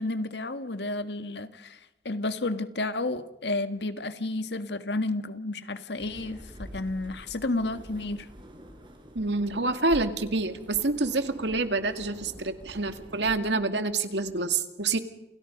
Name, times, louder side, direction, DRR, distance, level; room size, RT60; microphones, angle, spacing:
voice 1, 0.0-1.8 2.1-8.3, left 2 dB, 80° left, 10 dB, 1.8 m, -31 dB
sound 1, 6.0-13.4, equal, 30° right, 4.7 m, -46 dB
voice 2, 9.1-15.0, right 3 dB, 90° right, 8 dB, 2.2 m, -27 dB
29.0 x 28.5 x 5.4 m, 0.89 s
head